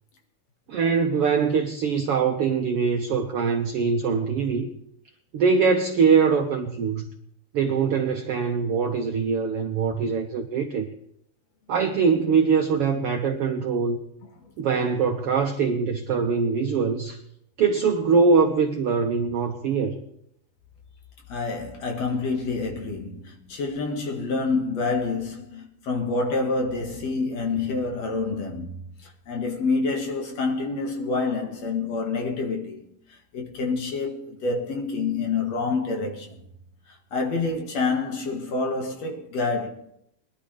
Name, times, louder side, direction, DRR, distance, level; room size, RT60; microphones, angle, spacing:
voice 1, 0.7-4.7 5.3-7.1 7.5-10.9 11.7-14.0 14.6-17.2 17.6-20.0, right 5 dB, 75° right, 1.4 m, -23 dB
voice 2, 21.3-28.8 29.0-32.8 33.1-36.4 36.9-39.7, left 3 dB, 60° left, 2.7 m, -27 dB
22.0 x 11.5 x 3.4 m
omnidirectional pair, 3.7 m